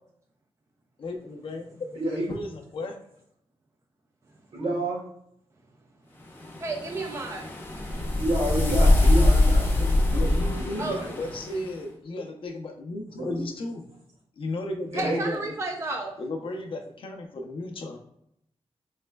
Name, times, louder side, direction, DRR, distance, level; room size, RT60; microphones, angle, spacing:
voice 1, 1.0-2.0 2.3-3.0 10.1-13.8 14.4-15.4 16.2-18.0, left 2 dB, 60° left, 2 dB, 0.6 m, -34 dB
voice 2, 1.9-2.3 4.5-5.0 8.2-11.1 13.1-13.4 14.9-15.3, right 1 dB, 75° right, -2 dB, 1.3 m, -30 dB
sound 1, 6.4-11.7, left 2 dB, 20° left, 0.7 m, -23 dB
voice 3, 6.6-7.5 10.8-11.0 14.9-16.1, right 2 dB, 25° right, 2 dB, 0.4 m, -32 dB
4.1 x 3.2 x 2.2 m, 0.74 s
wide cardioid pair, 160°, 10 cm